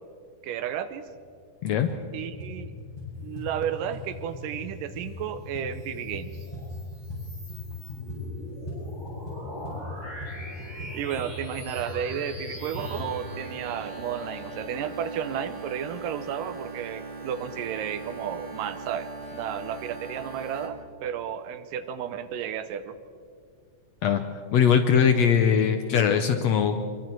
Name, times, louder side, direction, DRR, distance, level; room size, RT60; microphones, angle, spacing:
voice 1, 0.4-1.0 2.1-2.7 3.2-6.3 10.8-23.0, right 9 dB, 85° right, 12 dB, 2.4 m, -33 dB
sound 1, 1.1-1.2 1.6-2.0 2.2-7.2 7.5-12.9, left 2 dB, 10° left, 7.3 m, -39 dB
sound 2, 5.6-16.5, equal, 25° right, 5.1 m, -43 dB
sound 3, 12.8-20.7, right 3 dB, 55° right, 3.4 m, -40 dB
voice 2, 24.5-26.9, left 7 dB, 70° left, 7 dB, 1.7 m, -21 dB
25.5 x 23.0 x 4.6 m, 2.2 s
omnidirectional pair, 3.8 m